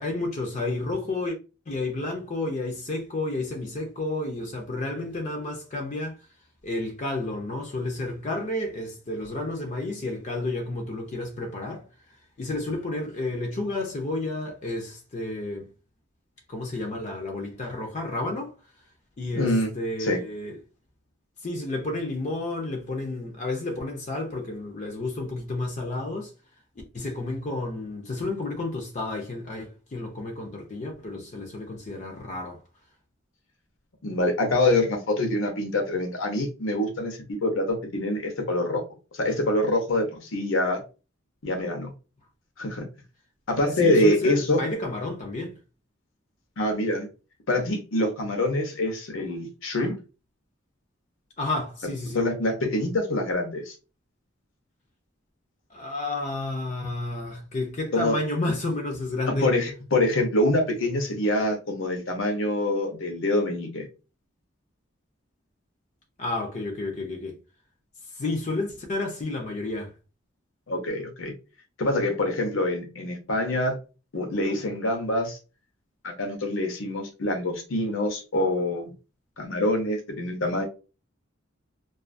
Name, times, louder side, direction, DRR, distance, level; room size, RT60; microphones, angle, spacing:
voice 1, 0.0-1.4 1.7-6.2 6.6-15.7 16.5-18.5 19.2-20.6 21.4-26.3 26.9-32.6 43.8-45.5 51.4-52.3 55.7-59.5 66.2-67.4 68.1-69.9, left 2 dB, 35° left, 0.5 m, -31 dB
voice 2, 19.4-19.7 20.0-20.2 34.0-38.8 39.1-40.8 41.4-41.9 42.6-42.8 43.5-44.6 46.6-47.1 47.5-50.0 52.1-53.7 57.9-58.2 59.4-63.9 70.7-71.3 71.8-73.8 74.1-75.4 76.0-78.9 79.4-80.6, left 1 dB, 75° left, 0.7 m, -25 dB
2.4 x 2.3 x 2.5 m
head